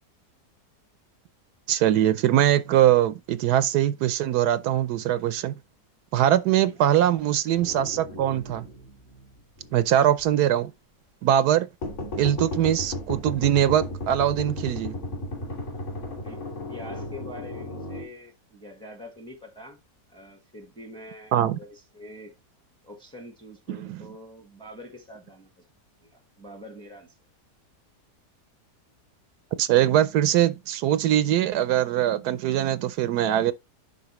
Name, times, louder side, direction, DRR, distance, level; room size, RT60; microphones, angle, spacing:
voice 1, 1.7-5.6 6.1-8.7 9.7-10.7 11.2-11.7 12.2-14.9 21.3-21.6 23.7-24.0 29.6-33.5, right 11 dB, 80° right, 1.1 m, -22 dB
sound 1, 7.6-9.8 10.2-10.3 11.8-18.0, left 1 dB, 45° left, 3.3 m, -35 dB
voice 2, 16.7-19.8 20.1-22.3 22.8-25.6 26.0-27.2, left 1 dB, 5° left, 1.1 m, -45 dB
10.5 x 4.2 x 3.0 m
omnidirectional pair, 1.7 m